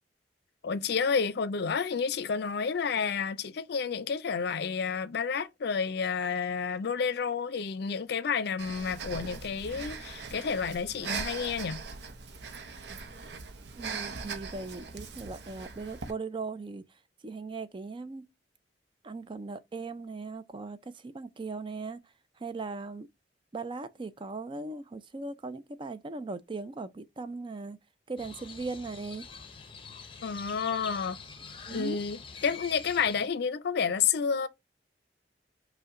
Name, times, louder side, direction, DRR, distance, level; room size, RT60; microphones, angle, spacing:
voice 1, 0.6-11.8 30.2-31.2 31.7-34.5, left 6 dB, 65° left, 0.4 m, -30 dB
Breathing, 8.6-16.1, right 5 dB, 70° right, 0.6 m, -40 dB
voice 2, 13.8-16.8 17.2-18.2 19.0-22.0 22.4-23.1 23.5-27.8 28.1-29.3 31.7-32.0, right 3 dB, 30° right, 0.4 m, -38 dB
Crow, 28.2-33.3, left 5 dB, 30° left, 0.7 m, -45 dB
5.4 x 2.2 x 3.6 m
head